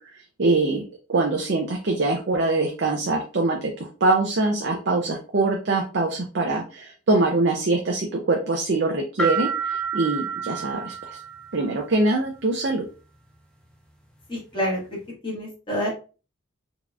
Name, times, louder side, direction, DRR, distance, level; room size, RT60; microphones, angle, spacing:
voice 1, 0.4-0.8 1.1-3.6 4.0-11.2 11.5-12.8, right 2 dB, 55° right, 2 dB, 0.5 m, -23 dB
sound 1, 9.2-11.8, right 5 dB, 5° left, 0.4 m, -29 dB
voice 2, 14.3-14.8 15.2-15.9, equal, 25° left, -4 dB, 1.4 m, -27 dB
4.0 x 2.9 x 2.3 m, 0.36 s
head